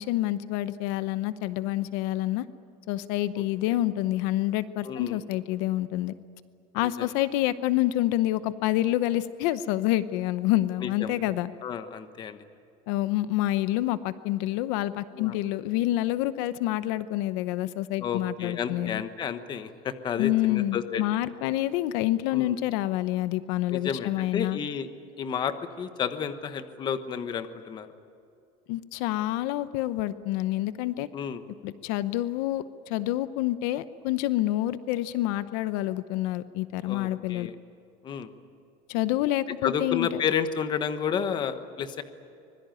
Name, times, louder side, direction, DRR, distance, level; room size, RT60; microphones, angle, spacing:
voice 1, 0.0-2.5 2.9-6.1 6.7-11.5 12.9-19.0 20.2-24.6 28.7-31.1 31.6-37.5 38.9-40.2, left 15 dB, 75° left, 13 dB, 0.9 m, -27 dB
voice 2, 4.8-5.2 6.8-7.1 10.8-11.1 11.6-12.4 15.1-15.4 18.0-21.0 22.3-22.6 23.7-24.9 25.2-27.9 31.1-31.4 36.8-37.5 38.0-38.3 39.6-42.0, left 7 dB, 30° left, 10 dB, 1.2 m, -31 dB
25.0 x 22.0 x 9.2 m, 2.6 s
cardioid pair, 175°, 16 cm